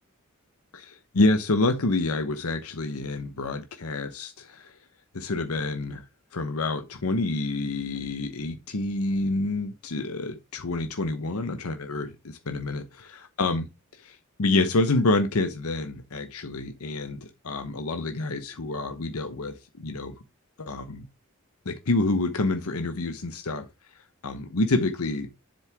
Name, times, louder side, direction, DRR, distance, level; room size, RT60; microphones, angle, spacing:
voice 1, 0.7-4.7 5.1-6.0 6.3-13.7 13.9-20.1 20.6-21.0 21.6-23.6 24.2-25.3, left 2 dB, 85° left, 0.9 m, -28 dB
7.5 x 7.4 x 3.4 m
head